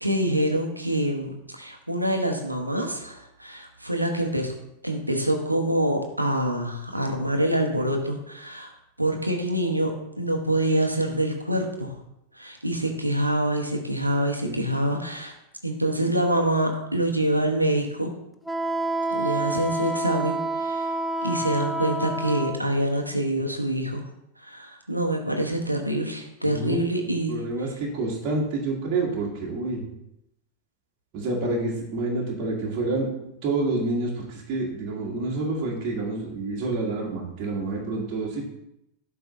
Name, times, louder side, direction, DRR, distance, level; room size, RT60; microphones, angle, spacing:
voice 1, 0.0-4.5 4.8-8.7 9.0-11.9 12.4-15.3 15.6-18.1 19.1-20.9 21.2-24.0 24.4-27.4, right 1 dB, 85° right, 3 dB, 1.1 m, -26 dB
Wind instrument woodwind instrument, 18.5-22.6, right 2 dB, ahead, 0.5 m, -28 dB
voice 2, 26.4-26.8 27.3-29.8 31.1-33.1 33.4-38.4, right 2 dB, 40° right, -3 dB, 1.8 m, -28 dB
7.8 x 3.4 x 5.2 m, 0.82 s
figure-of-eight pair, 90°, 0 cm